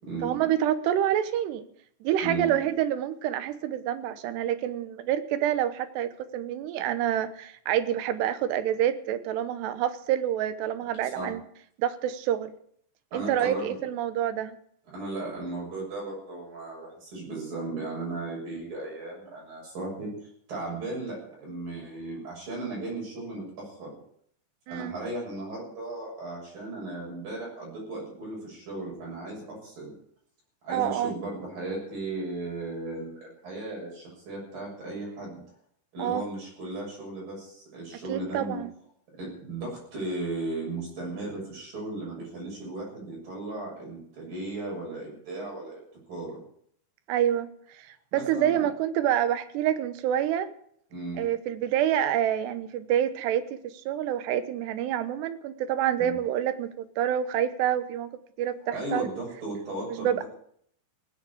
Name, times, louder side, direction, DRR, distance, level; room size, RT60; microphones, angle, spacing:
voice 1, 0.2-1.6 2.0-11.4 11.8-12.5 13.1-14.6 24.7-25.0 30.7-31.1 36.0-36.3 38.1-38.7 47.1-50.5 51.2-58.1 58.4-59.1 59.9-60.2, right 10 dB, 80° right, 12 dB, 3.1 m, -27 dB
voice 2, 11.0-11.4 13.1-13.8 14.9-23.9 24.7-29.9 30.6-35.4 35.9-38.6 39.2-45.8 46.1-46.4 48.1-48.7 50.9-51.2 56.0-56.1 58.7-60.3, right 2 dB, 55° right, -3 dB, 8.5 m, -36 dB
17.5 x 8.8 x 8.5 m, 0.65 s
omnidirectional pair, 5.0 m